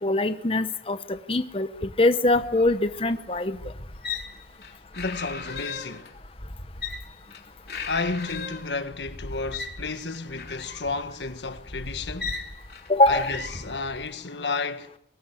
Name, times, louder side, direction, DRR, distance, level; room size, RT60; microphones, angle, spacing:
voice 1, 0.0-1.7 2.0-3.6 12.9-13.3, left 2 dB, 30° left, 0.8 m, -22 dB
sound 1, 2.3-14.1, left 4 dB, 65° left, 3.0 m, -38 dB
voice 2, 5.0-6.1 7.9-12.3 13.1-14.9, left 3 dB, 85° left, 1.5 m, -32 dB
22.5 x 18.5 x 9.2 m
head